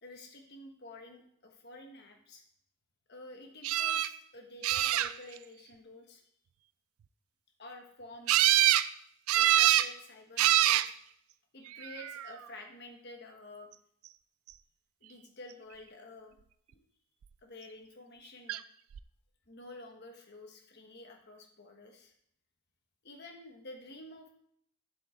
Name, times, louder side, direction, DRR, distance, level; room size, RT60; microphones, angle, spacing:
voice 1, 0.0-2.4 3.1-6.2 7.6-8.3 9.3-10.9 11.5-13.7 15.0-16.4 16.7-16.8 17.4-18.6 19.5-22.1 23.0-24.3, left 2 dB, 50° left, 3 dB, 1.3 m, -50 dB
sound 1, 3.6-4.1 4.6-5.4 8.3-8.9 9.3-9.9 10.4-10.9 11.8-12.3 18.5-18.6 18.9-19.0, right 13 dB, 70° right, 0.3 m, -25 dB
7.8 x 7.7 x 3.8 m, 0.69 s
head